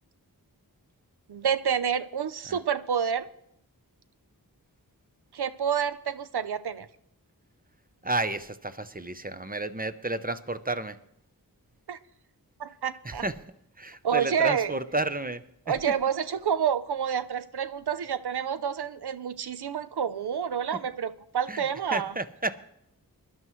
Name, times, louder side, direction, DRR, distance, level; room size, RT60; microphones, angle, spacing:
voice 1, 1.3-3.3 5.3-6.9 11.9-12.0 12.6-13.2 14.0-14.7 15.7-22.1, right 8 dB, 85° right, 14 dB, 0.6 m, -28 dB
voice 2, 8.0-11.0 13.0-13.3 13.8-15.4 21.5-21.6 21.9-22.6, right 2 dB, 25° right, 12 dB, 0.7 m, -31 dB
21.5 x 11.0 x 3.1 m, 0.75 s
wide cardioid pair, 40°, 38 cm